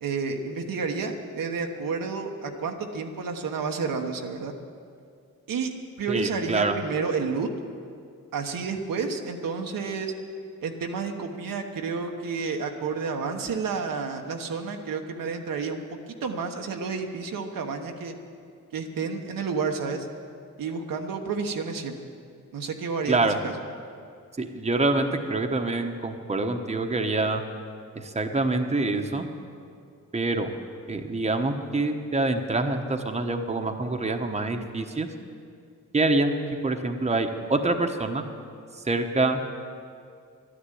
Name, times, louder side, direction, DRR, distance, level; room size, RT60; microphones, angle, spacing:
voice 1, 0.0-4.5 5.5-5.7 6.0-7.5 8.3-10.1 10.6-15.8 16.2-18.1 18.7-20.1 20.6-22.0 22.5-23.5, right 5 dB, 85° right, 3 dB, 1.2 m, -30 dB
voice 2, 6.1-6.7 23.1-23.4 24.4-27.4 28.0-29.3 30.1-30.5 30.9-35.1 35.9-36.3 36.6-38.2 38.8-39.4, right 2 dB, 20° right, 5 dB, 1.1 m, -26 dB
12.0 x 10.0 x 9.2 m, 2.3 s
cardioid pair, 80°, 33 cm